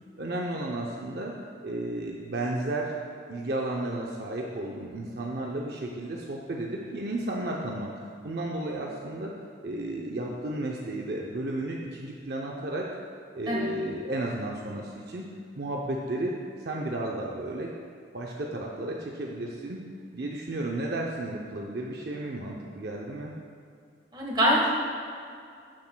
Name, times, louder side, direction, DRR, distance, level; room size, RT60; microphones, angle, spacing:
voice 1, 0.2-1.3 1.6-2.9 3.3-7.9 8.2-9.3 9.6-12.9 13.3-15.2 15.6-17.7 18.1-19.8 20.1-23.4, right 1 dB, 55° right, -1 dB, 0.6 m, -33 dB
voice 2, 24.1-24.7, equal, 25° right, -3 dB, 1.3 m, -24 dB
11.5 x 7.4 x 2.2 m, 2.3 s
head